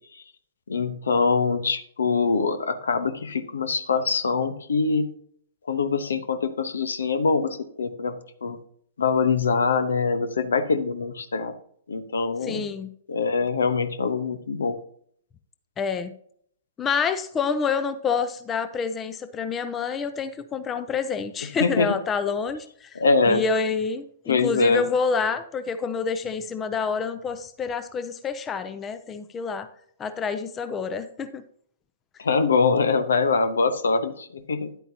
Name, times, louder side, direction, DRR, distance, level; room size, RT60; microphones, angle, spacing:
voice 1, 0.7-5.1 5.7-8.6 9.0-11.5 11.9-12.6 13.1-14.8 21.6-21.9 22.9-23.4 24.3-24.8 32.2-34.7, left 4 dB, 75° left, 11 dB, 1.0 m, -23 dB
voice 2, 12.4-12.9 15.8-16.1 16.8-29.7 30.0-31.4, left 5 dB, 20° left, 11 dB, 0.6 m, -28 dB
10.5 x 9.0 x 2.8 m, 0.63 s
figure-of-eight pair, 120°, 0 cm